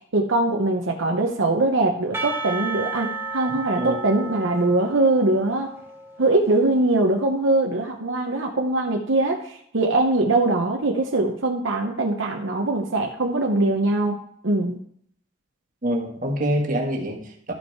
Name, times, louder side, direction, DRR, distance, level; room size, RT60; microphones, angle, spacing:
voice 1, 0.1-5.7 6.2-14.2 14.4-14.8, right 2 dB, 70° right, 2 dB, 0.9 m, -22 dB
Percussion, 2.1-7.0, right 3 dB, 10° right, 1.0 m, -33 dB
voice 2, 15.8-17.5, right 1 dB, 40° right, 1 dB, 1.6 m, -25 dB
12.5 x 5.4 x 4.6 m, 0.68 s
head